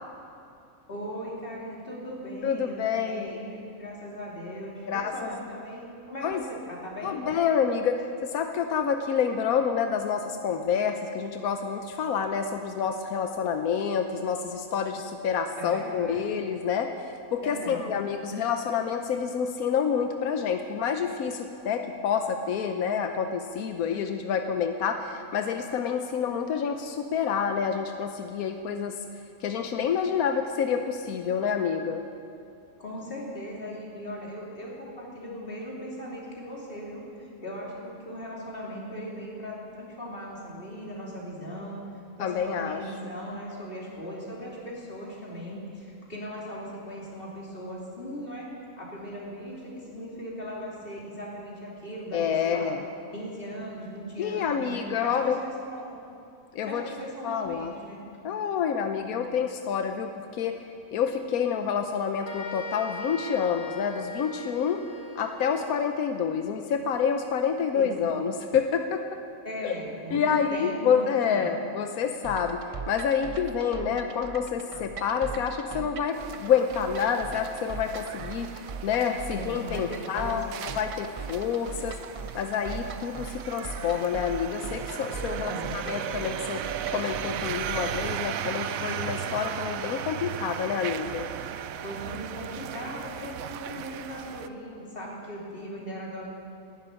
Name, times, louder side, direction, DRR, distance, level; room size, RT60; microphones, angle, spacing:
voice 1, 0.9-2.8 3.1-7.2 15.6-16.2 17.4-17.9 32.8-41.8 42.2-48.5 48.8-52.7 53.1-55.9 56.6-58.0 67.7-68.1 69.4-71.6 79.3-80.6 85.4-85.7 91.8-96.3, equal, 40° left, -4 dB, 3.3 m, -38 dB
voice 2, 2.4-3.3 4.9-5.4 6.2-6.4 7.0-29.0 29.4-32.0 42.2-42.8 52.1-52.8 54.2-55.4 56.5-56.9 57.2-57.7 58.2-60.6 60.9-64.8 65.2-69.2 69.6-69.7 70.1-82.0 82.3-86.7 86.9-91.3, left 7 dB, 90° left, 6 dB, 1.2 m, -28 dB
sound 1, 62.2-65.9, left 2 dB, 70° left, 1.7 m, -41 dB
sound 2, 72.2-88.1, right 5 dB, 50° right, 0.4 m, -40 dB
sound 3, 76.1-94.5, right 9 dB, 75° right, 1.0 m, -37 dB
11.5 x 11.0 x 9.5 m, 2.6 s
omnidirectional pair, 1.5 m